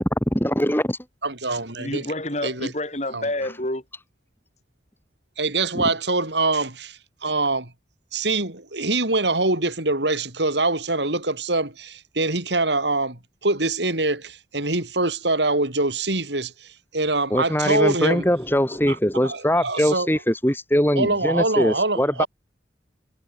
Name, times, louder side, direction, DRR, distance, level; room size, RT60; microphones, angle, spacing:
voice 1, 0.3-1.0 5.7-5.8 17.3-22.2, equal, 10° left, 4.0 m, -22 dB
voice 2, 1.2-2.0 2.4-2.7 3.1-3.2 5.4-7.7 8.1-16.5 16.9-18.2 18.9-19.0 19.2-20.1 21.0-22.3, right 2 dB, 85° right, 6.7 m, -24 dB
voice 3, 1.8-3.8, left 1 dB, 40° left, 5.5 m, -28 dB
head